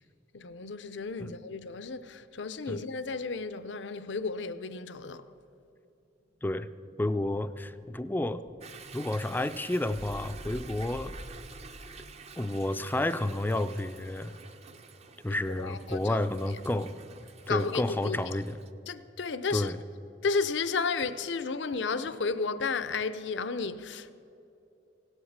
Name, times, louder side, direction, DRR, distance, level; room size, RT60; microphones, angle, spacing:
voice 1, 0.3-5.3 15.3-16.2 17.5-18.2 18.9-19.7 20.2-24.1, left 4 dB, 70° left, 0.6 m, -33 dB
Explosion, 6.2-12.3, equal, 90° right, 2.5 m, -48 dB
voice 2, 7.0-8.4 8.9-11.1 12.4-14.3 15.2-16.9 17.5-18.6 19.5-19.8, left 1 dB, 10° left, 0.4 m, -30 dB
Toilet flush / Drip / Trickle dribble, 8.6-18.7, right 5 dB, 35° right, 0.6 m, -49 dB
17.0 x 8.1 x 7.3 m
head